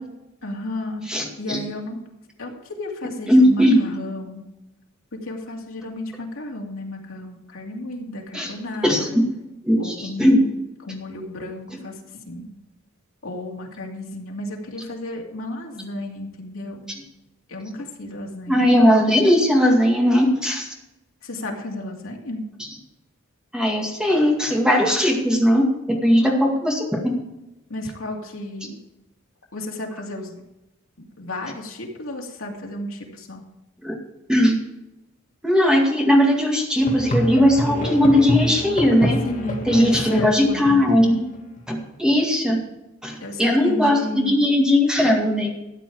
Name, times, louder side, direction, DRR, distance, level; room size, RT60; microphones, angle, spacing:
voice 1, 0.4-1.1 1.4-2.0 2.4-4.4 5.2-9.2 9.8-10.5 10.8-12.5 13.2-16.9 17.5-18.7 21.2-22.5 27.7-28.8 29.5-30.4 31.2-33.4 39.2-40.8 43.2-44.3, left 1 dB, 75° left, 0 dB, 2.5 m, -33 dB
voice 2, 1.1-1.6 3.3-3.8 8.3-8.5 8.8-9.2 9.6-10.4 18.5-20.7 23.5-27.1 33.8-33.9 34.3-34.6 35.4-39.2 39.7-41.2 41.7-42.6 43.0-45.5, equal, 5° right, 0 dB, 2.1 m, -18 dB
Musical instrument, 36.8-41.6, equal, 40° left, 1.8 m, -27 dB
13.5 x 8.8 x 4.8 m, 0.95 s
head